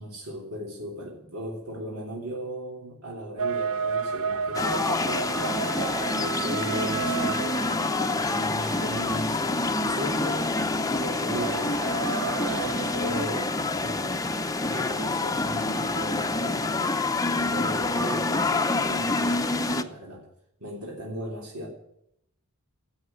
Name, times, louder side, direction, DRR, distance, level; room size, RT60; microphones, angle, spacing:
voice 1, 0.0-5.6 6.1-10.5 11.0-12.0 12.4-13.5 13.8-14.3 14.6-17.0 17.4-20.3 20.6-21.7, equal, 90° right, -1 dB, 3.2 m, -37 dB
sound 1, 3.4-13.3, right 6 dB, 65° right, 0.6 m, -33 dB
sound 2, 4.5-19.8, left 3 dB, 15° left, 0.7 m, -27 dB
13.0 x 7.9 x 8.9 m, 0.76 s
head